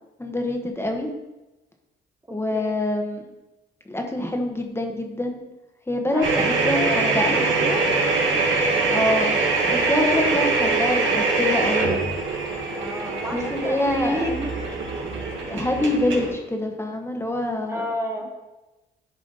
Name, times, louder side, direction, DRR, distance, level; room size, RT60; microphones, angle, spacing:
voice 1, 0.2-1.1 2.3-3.2 3.8-5.4 5.9-7.3 8.9-9.4 9.6-12.1 13.3-14.3 15.5-17.8, left 1 dB, 10° left, 2 dB, 1.3 m, -25 dB
voice 2, 6.1-7.9 12.7-14.5 17.6-18.3, equal, 15° right, 1 dB, 1.1 m, -30 dB
sound 1, 6.2-16.3, right 3 dB, 70° right, 1.8 m, -23 dB
11.5 x 4.9 x 4.0 m, 1.1 s
cardioid pair, 90°, 20 cm